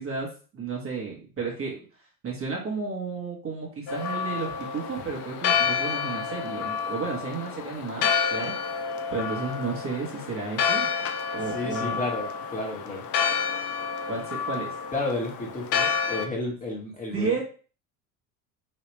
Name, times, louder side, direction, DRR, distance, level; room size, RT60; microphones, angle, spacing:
voice 1, 0.0-1.8 2.2-8.6 9.1-10.9 11.3-12.0 14.0-14.7 17.1-17.4, right 4 dB, 30° right, -2 dB, 1.3 m, -32 dB
Church bell, 3.9-16.3, left 6 dB, 45° left, 0.5 m, -29 dB
voice 2, 11.3-13.0 14.9-17.4, left 2 dB, 20° left, -3 dB, 1.4 m, -32 dB
3.2 x 2.8 x 3.2 m, 0.38 s
hypercardioid pair, 70°, 42 cm